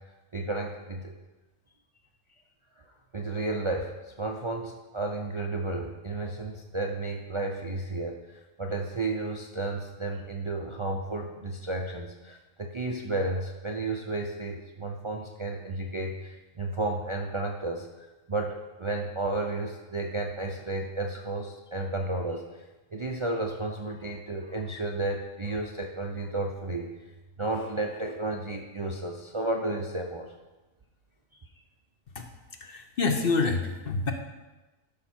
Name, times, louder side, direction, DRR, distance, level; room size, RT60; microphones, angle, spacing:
voice 1, 0.3-1.1 3.1-22.4 22.9-26.9 27.4-30.3, right 2 dB, 35° right, 0 dB, 0.5 m, -32 dB
voice 2, 32.6-34.1, left 4 dB, 50° left, 5 dB, 0.9 m, -27 dB
12.0 x 5.7 x 4.4 m, 1.1 s
omnidirectional pair, 1.4 m